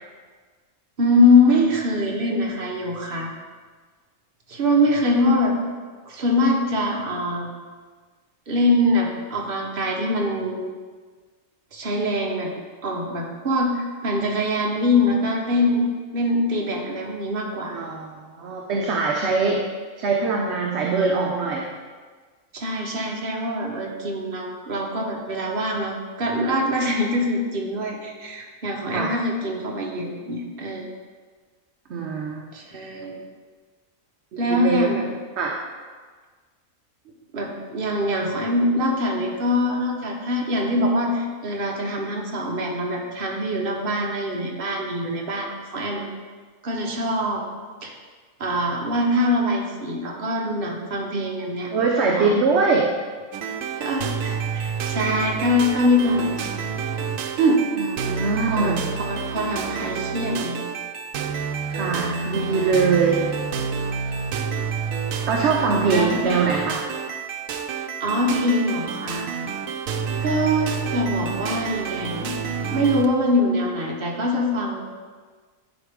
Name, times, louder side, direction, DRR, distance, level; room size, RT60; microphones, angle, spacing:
voice 1, 1.0-3.3 4.5-5.6 6.1-7.5 8.5-10.7 11.7-12.5 12.8-17.8 22.5-30.9 32.5-33.2 34.4-35.1 37.3-46.1 46.6-47.4 47.8-47.9 48.4-51.7 52.2-52.4 53.8-56.5 57.4-57.9 58.4-60.6 65.9-66.3 68.0-69.3 70.2-72.3 72.7-74.8, left 1 dB, 45° right, -1 dB, 1.2 m, -23 dB
voice 2, 17.7-19.6 20.0-21.7 28.9-29.1 31.9-32.4 34.5-34.9 35.4-35.6 51.7-52.9 57.8-58.9 61.7-63.2 65.3-66.8, right 4 dB, 60° right, 0 dB, 0.9 m, -22 dB
sound 1, 53.3-73.1, right 6 dB, 80° right, 1.0 m, -29 dB
10.5 x 4.5 x 3.6 m, 1.5 s
omnidirectional pair, 1.4 m